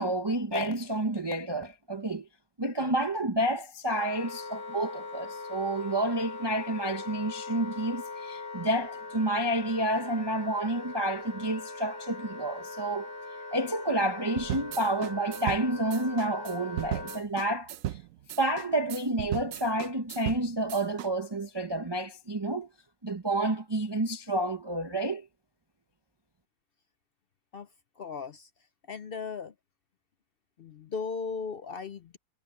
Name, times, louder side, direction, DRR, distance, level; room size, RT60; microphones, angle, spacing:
voice 1, 0.0-2.3 2.6-13.1 13.5-18.0 18.4-22.7 23.0-25.3, right 1 dB, 25° right, 0.6 m, -30 dB
Wind instrument woodwind instrument, 3.9-17.3, left 3 dB, 30° left, 3.1 m, -41 dB
sound 1, 14.4-21.1, right 13 dB, 70° right, 0.9 m, -36 dB
voice 2, 28.0-28.5 28.9-29.5 30.6-32.2, left 5 dB, 60° left, 0.6 m, -37 dB
omnidirectional pair, 1.7 m